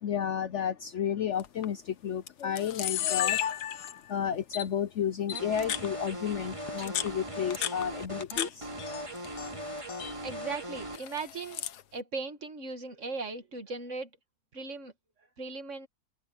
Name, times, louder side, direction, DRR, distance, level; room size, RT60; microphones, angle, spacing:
voice 1, 0.0-3.6 4.1-8.7, left 8 dB, 60° left, 0.9 m, -32 dB
Camera, 1.4-1.7 2.3-2.4 2.6-4.1 4.5-4.7 5.3-5.9 6.7-8.5 8.8-9.5 9.8-10.1 10.9-11.8, left 10 dB, 85° left, 1.5 m, -33 dB
sound 1, 5.3-11.0, equal, 20° right, 4.1 m, -39 dB
voice 2, 10.0-14.1 14.5-14.9 15.4-15.9, right 3 dB, 50° right, 2.0 m, -38 dB
omnidirectional pair, 1.7 m